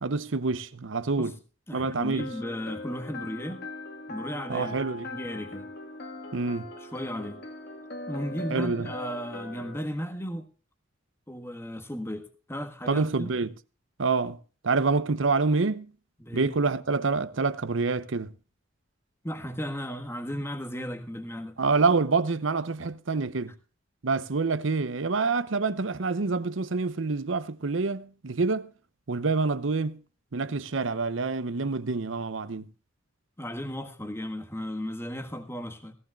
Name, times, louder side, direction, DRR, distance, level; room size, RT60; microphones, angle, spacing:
voice 1, 0.0-1.3 1.7-2.3 4.5-5.1 6.3-6.7 8.5-8.9 12.9-13.5 14.0-14.4 14.6-15.9 16.3-18.3 21.6-23.5 24.0-28.7 29.1-30.0 30.3-32.7, right 4 dB, 75° right, 0.8 m, -27 dB
voice 2, 1.7-3.7 4.1-5.7 6.7-7.4 8.1-10.5 11.3-13.3 16.2-16.5 19.2-21.6 33.4-35.9, equal, 15° left, 1.5 m, -35 dB
sound 1, 2.2-9.8, left 2 dB, 55° left, 1.7 m, -40 dB
17.0 x 15.0 x 2.4 m
head